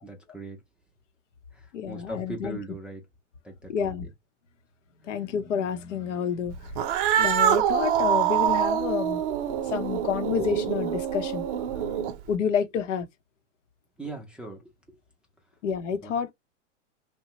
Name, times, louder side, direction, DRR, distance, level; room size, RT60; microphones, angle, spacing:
voice 1, 0.0-0.6 1.5-3.0 3.4-4.1 5.0-5.2 14.0-15.0 16.0-16.1, right 2 dB, 5° right, 0.4 m, -40 dB
voice 2, 1.7-2.6 3.7-4.0 5.1-6.6 7.2-9.3 9.7-11.4 12.3-13.1 15.6-16.3, left 7 dB, 75° left, 0.8 m, -29 dB
Cat, 6.7-12.3, right 10 dB, 45° right, 0.6 m, -25 dB
3.0 x 2.2 x 2.8 m
hypercardioid pair, 125°, 37 cm